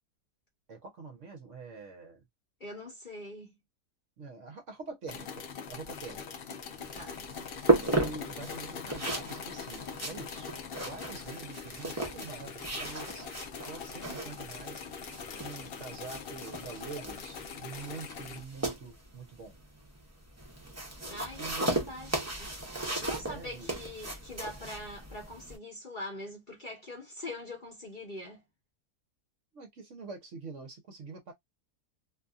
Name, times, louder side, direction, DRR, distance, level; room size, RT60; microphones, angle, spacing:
voice 1, 0.7-2.2 4.2-6.2 7.9-10.5 10.8-13.3 13.7-14.8 15.4-19.6 21.4-21.9 23.1-23.7 29.5-31.3, right 4 dB, 60° right, 0.9 m, -45 dB
voice 2, 2.6-3.6 6.9-7.2 21.1-22.5 23.0-28.4, left 1 dB, 40° left, 0.8 m, -43 dB
sound 1, 5.1-18.4, left 6 dB, 75° left, 0.5 m, -43 dB
sound 2, 6.7-25.6, right 2 dB, 20° right, 0.4 m, -35 dB
2.7 x 2.5 x 2.3 m
omnidirectional pair, 1.7 m